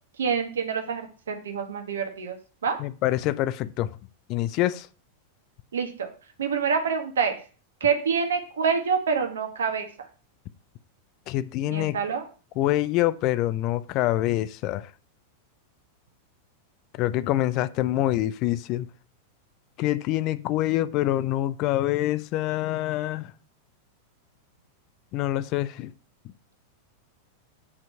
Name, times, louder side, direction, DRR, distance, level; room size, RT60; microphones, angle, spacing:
voice 1, 0.2-2.4 2.6-2.8 5.7-6.1 6.4-7.4 7.8-9.9 11.7-12.2, right 6 dB, 65° right, 1.4 m, -26 dB
voice 2, 2.8-3.9 4.3-4.9 11.3-12.0 12.6-14.8 17.0-18.9 19.8-23.3 25.1-25.9, left 14 dB, 40° left, 0.5 m, -25 dB
8.6 x 4.5 x 5.5 m
figure-of-eight pair, 90°, 0 cm